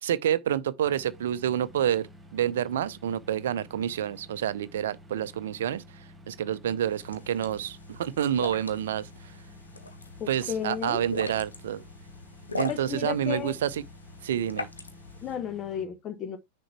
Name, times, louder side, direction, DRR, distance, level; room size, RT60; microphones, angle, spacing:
voice 1, 0.0-5.8 6.3-9.1 10.3-11.8 12.6-13.8 14.2-14.7, right 10 dB, 60° right, 0.6 m, -28 dB
sound 1, 0.8-15.8, left 1 dB, 5° right, 1.8 m, -51 dB
sound 2, 6.9-15.4, left 3 dB, 75° left, 1.0 m, -41 dB
voice 2, 10.2-11.0 12.7-13.5 15.2-16.4, left 9 dB, 30° left, 1.0 m, -33 dB
6.4 x 4.4 x 4.3 m
figure-of-eight pair, 90°, 0 cm